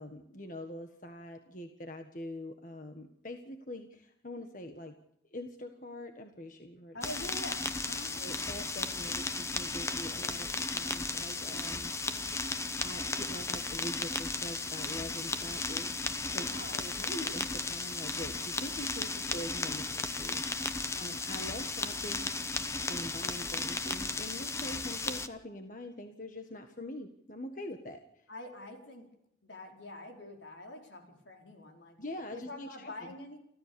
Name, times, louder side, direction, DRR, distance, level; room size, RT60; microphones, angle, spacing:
voice 1, 0.0-4.9 5.3-7.0 8.1-11.9 12.8-16.5 16.7-22.3 22.9-28.2 32.0-33.2, left 1 dB, 45° left, 5 dB, 1.6 m, -44 dB
voice 2, 6.9-8.2 16.3-16.8 20.7-21.1 28.3-29.1 29.4-32.0 32.3-33.4, left 1 dB, 80° left, 2 dB, 4.8 m, -45 dB
sound 1, 7.0-25.3, left 3 dB, 15° left, 1.0 m, -35 dB
29.5 x 14.0 x 7.0 m, 0.75 s
head